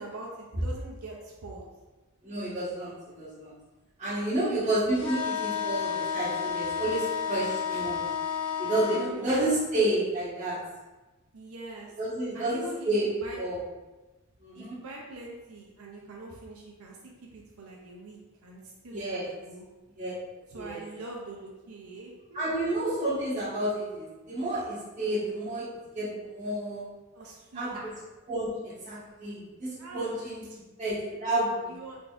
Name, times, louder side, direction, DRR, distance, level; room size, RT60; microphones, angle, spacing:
voice 1, 0.0-1.6 4.5-4.8 8.9-9.3 11.3-12.0 12.3-13.4 14.5-17.0 17.3-19.6 20.5-22.5 27.1-27.9 29.8-30.1 30.5-30.6 31.7-32.0, right 2 dB, 90° right, -2 dB, 0.6 m, -43 dB
voice 2, 2.2-3.5 4.0-8.0 8.6-10.6 12.0-13.1 13.4-13.6 14.4-14.7 18.9-19.3 19.9-20.1 20.5-20.8 22.3-25.7 25.9-26.9 27.5-27.9 28.3-30.4 30.8-31.7, right 1 dB, 35° right, -10 dB, 1.5 m, -30 dB
sound 1, 4.9-9.1, left 7 dB, 25° left, 0.7 m, -31 dB
3.9 x 3.4 x 2.5 m, 1.1 s
head